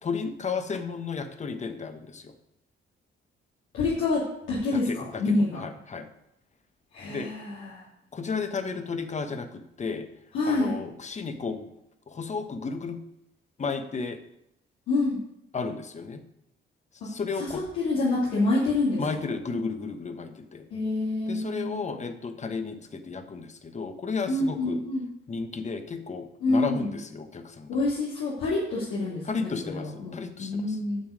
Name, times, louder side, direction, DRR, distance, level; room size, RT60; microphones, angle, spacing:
voice 1, 0.0-2.3 4.7-6.1 7.1-7.3 8.1-10.1 10.5-11.7 12.1-13.0 13.6-14.2 15.5-16.2 17.0-17.6 19.0-20.7 21.3-24.8 25.3-27.7 29.2-30.8, left 4 dB, 35° left, 8 dB, 1.2 m, -33 dB
voice 2, 3.7-4.2 4.5-5.6 6.9-7.8 10.3-10.7 14.9-15.2 17.4-19.0 20.7-21.7 24.3-25.0 26.4-26.9 27.7-30.1 30.4-31.0, left 2 dB, 90° left, -8 dB, 2.7 m, -27 dB
9.3 x 7.0 x 5.1 m, 0.80 s
cardioid pair, 90°, 20 cm